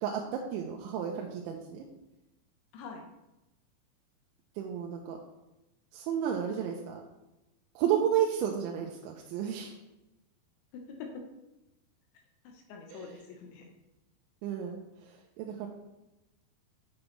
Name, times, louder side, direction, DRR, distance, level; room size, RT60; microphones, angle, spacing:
voice 1, 0.0-1.9 4.6-5.2 5.9-7.0 7.8-9.7 12.9-13.1 14.4-14.8 15.4-15.7, right 9 dB, 85° right, 0 dB, 3.0 m, -32 dB
voice 2, 2.7-3.0 10.7-11.2 12.4-13.7, left 5 dB, 80° left, 2 dB, 3.2 m, -45 dB
8.6 x 6.1 x 3.2 m, 0.95 s
omnidirectional pair, 5.4 m